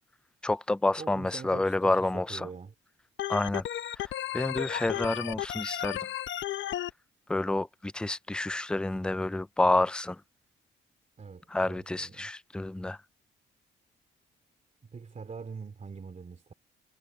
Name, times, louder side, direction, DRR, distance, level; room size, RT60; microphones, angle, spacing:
voice 1, 0.4-2.5 3.3-3.6 4.0-6.0 7.3-10.2 11.5-13.0, left 2 dB, 5° left, 0.4 m, -29 dB
voice 2, 1.0-2.7 11.2-12.3 14.9-16.5, right 5 dB, 35° right, 3.2 m, -44 dB
Organ, 3.2-6.9, left 12 dB, 70° left, 0.8 m, -34 dB
cardioid pair, 90°, 20 cm